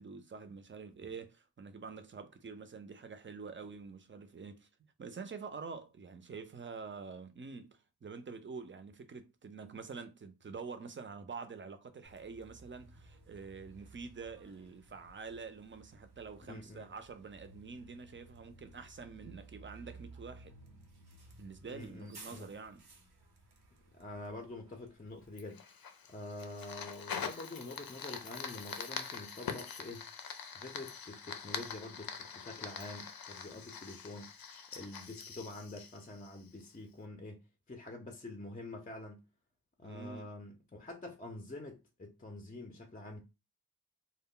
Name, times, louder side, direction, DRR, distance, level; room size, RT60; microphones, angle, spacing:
voice 1, 0.0-4.7 5.0-20.6 21.4-22.8 39.8-40.3, right 5 dB, 30° right, 0.5 m, -47 dB
Bus, 12.0-25.3, right 2 dB, 90° right, 0.8 m, -57 dB
voice 2, 16.5-16.9 21.7-22.5 23.9-25.6 26.1-30.1 30.5-34.3 34.7-39.3 39.8-43.2, left 2 dB, 20° left, 0.5 m, -46 dB
Fire, 25.4-36.8, left 6 dB, 65° left, 0.6 m, -44 dB
2.1 x 2.0 x 3.7 m
wide cardioid pair, 60°, 38 cm